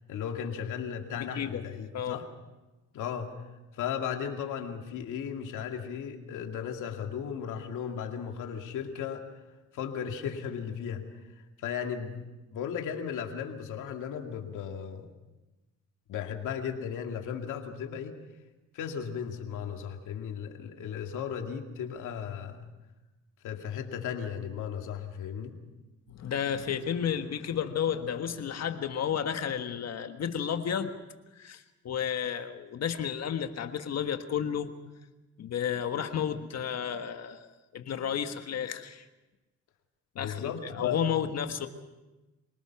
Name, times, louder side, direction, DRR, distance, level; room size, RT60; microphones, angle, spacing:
voice 1, 0.1-2.3 2.9-3.3 3.7-9.3 9.7-11.0 11.6-12.2 12.5-15.1 16.1-18.2 18.7-22.7 23.4-25.6 40.1-41.0, left 8 dB, 85° left, 4 dB, 2.3 m, -35 dB
voice 2, 26.1-31.0 31.3-34.7 35.4-39.0 40.2-41.7, left 8 dB, 60° left, 7 dB, 1.5 m, -32 dB
26.5 x 19.0 x 6.0 m, 1.1 s
cardioid pair, 90°, 30 cm